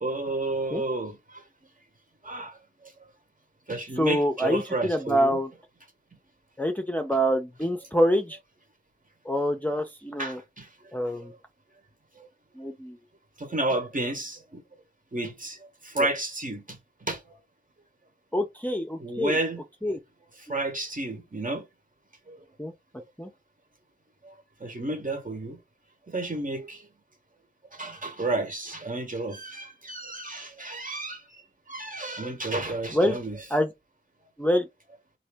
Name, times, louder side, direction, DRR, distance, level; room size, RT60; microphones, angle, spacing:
voice 1, 0.0-1.4 2.2-2.9 3.7-5.4 10.2-10.7 11.2-11.4 12.2-12.3 13.4-14.6 15.1-17.4 19.0-19.6 20.5-21.6 22.3-22.4 24.2-24.3 24.6-25.6 26.1-26.9 27.7-31.4 31.7-33.4, right 2 dB, 40° right, 1.2 m, -31 dB
voice 2, 4.0-5.5 6.6-8.4 9.2-10.4 10.9-11.3 12.6-13.0 18.3-19.4 19.8-20.0 22.6-22.7 23.2-23.3 32.9-33.2 33.5-33.7 34.4-34.7, equal, 10° left, 0.6 m, -26 dB
4.0 x 2.8 x 3.4 m
wide cardioid pair, 55°, 20 cm